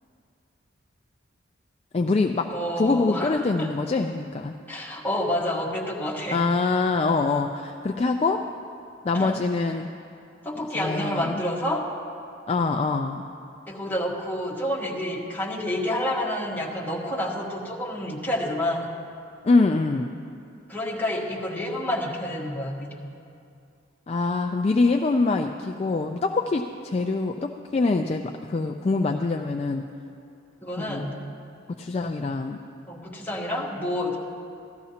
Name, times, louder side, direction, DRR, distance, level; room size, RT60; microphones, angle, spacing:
voice 1, 1.9-4.5 6.3-8.4 9.0-9.9 10.7-11.4 12.5-13.2 19.4-20.2 24.1-29.9 30.8-31.0 31.8-32.6, left 3 dB, 30° left, 4 dB, 0.3 m, -24 dB
voice 2, 2.5-3.7 4.7-6.4 9.1-9.4 10.4-11.8 13.7-18.9 20.7-23.0 30.6-31.2 32.9-34.2, left 1 dB, 10° left, -5 dB, 1.5 m, -29 dB
16.5 x 13.0 x 2.9 m, 2.5 s
head